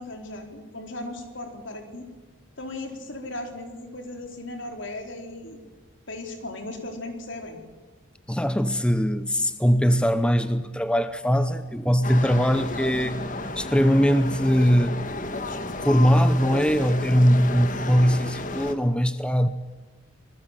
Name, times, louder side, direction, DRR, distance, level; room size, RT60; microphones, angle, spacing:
voice 1, 0.0-2.0 2.6-5.6 6.1-7.6, left 2 dB, 75° left, 4.4 m, -37 dB
voice 2, 8.3-15.0 15.8-19.5, equal, 5° left, 0.7 m, -21 dB
sound 1, 12.0-18.7, left 2 dB, 40° left, 1.7 m, -32 dB
26.5 x 20.5 x 7.6 m
head